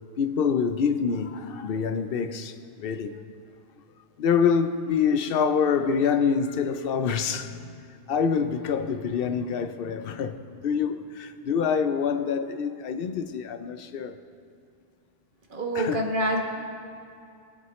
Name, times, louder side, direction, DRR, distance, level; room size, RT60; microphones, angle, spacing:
voice 1, 0.2-3.2 4.2-14.2 15.7-16.0, left 6 dB, 65° left, 0.8 m, -26 dB
voice 2, 15.5-16.4, right 1 dB, 55° right, 1.4 m, -26 dB
19.5 x 7.8 x 3.1 m
omnidirectional pair, 1.1 m